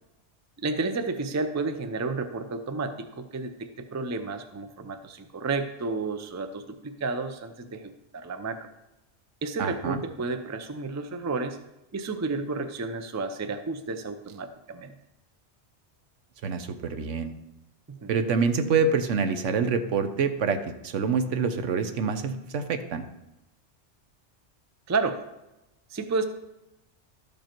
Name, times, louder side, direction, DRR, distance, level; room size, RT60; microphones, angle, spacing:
voice 1, 0.6-8.7 9.4-11.6 11.9-14.9 17.9-18.2 24.9-25.3 25.9-26.3, right 3 dB, 25° right, 8 dB, 0.4 m, -31 dB
voice 2, 9.6-10.0 16.4-17.3 18.1-23.0, right 5 dB, 80° right, 9 dB, 1.1 m, -26 dB
13.0 x 5.3 x 4.5 m, 0.92 s
omnidirectional pair, 1.2 m